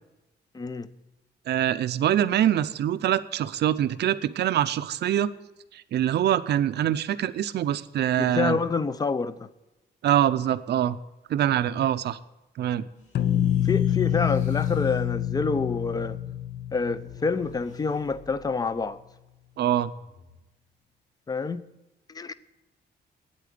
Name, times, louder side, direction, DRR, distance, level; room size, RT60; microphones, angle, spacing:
voice 1, 0.5-0.9 8.2-9.5 13.6-16.2 16.7-19.0 21.3-21.6 22.1-22.3, left 4 dB, 20° left, 0.5 m, -27 dB
voice 2, 1.5-5.3 5.7-8.6 10.0-11.0 11.3-12.2 12.6-12.9 19.6-19.9, right 11 dB, 70° right, 0.6 m, -24 dB
sound 1, 12.9-18.9 19.8-20.4, left 3 dB, 40° left, 2.6 m, -55 dB
sound 2, 13.1-18.0, left 10 dB, 65° left, 0.6 m, -27 dB
9.0 x 8.5 x 9.3 m
wide cardioid pair, 165°, 18 cm